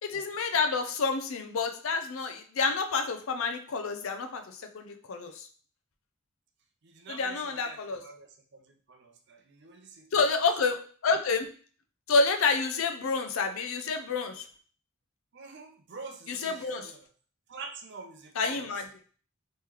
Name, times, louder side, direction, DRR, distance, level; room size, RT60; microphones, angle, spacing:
voice 1, 0.0-5.5 7.1-8.0 10.1-11.5 12.1-14.5 16.3-16.9 18.4-18.8, left 4 dB, 70° left, 6 dB, 0.5 m, -29 dB
voice 2, 6.8-10.3 15.3-17.1 17.5-18.7, right 4 dB, 55° right, 5 dB, 0.5 m, -46 dB
3.1 x 2.9 x 3.6 m, 0.43 s
head